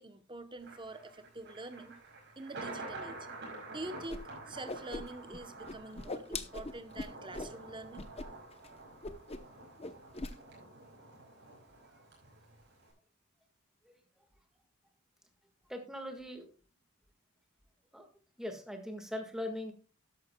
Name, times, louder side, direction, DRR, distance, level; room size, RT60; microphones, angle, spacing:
voice 1, 0.0-2.0 2.4-3.3 3.7-8.1, right 2 dB, 20° right, 0.9 m, -46 dB
Thunder, 0.6-12.9, right 2 dB, 55° right, 5.3 m, -49 dB
Whoosh swoosh swish, 4.1-4.2 4.5-5.4 5.7-7.5 7.9-8.3 8.5-8.7 9.0-9.5 9.8-10.3, left 2 dB, 25° left, 0.8 m, -40 dB
voice 2, 15.7-16.5 17.9-18.1 18.4-19.7, left 1 dB, ahead, 1.6 m, -40 dB
13.5 x 11.0 x 2.3 m
head